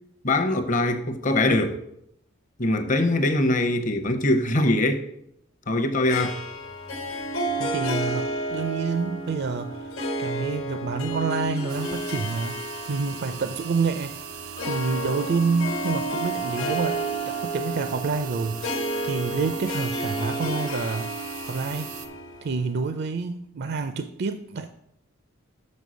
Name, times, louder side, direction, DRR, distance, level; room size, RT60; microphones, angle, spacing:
voice 1, 0.2-1.8 2.6-5.1 5.7-6.4, left 1 dB, 40° left, 0.7 m, -22 dB
Harp, 6.1-22.8, right 1 dB, 65° left, 1.2 m, -31 dB
voice 2, 7.6-14.2 14.6-18.6 19.0-21.1 21.4-21.9 22.4-24.7, right 4 dB, 50° right, 0.4 m, -28 dB
sound 1, 11.7-22.1, right 9 dB, 85° right, 0.9 m, -40 dB
6.2 x 5.3 x 6.2 m
head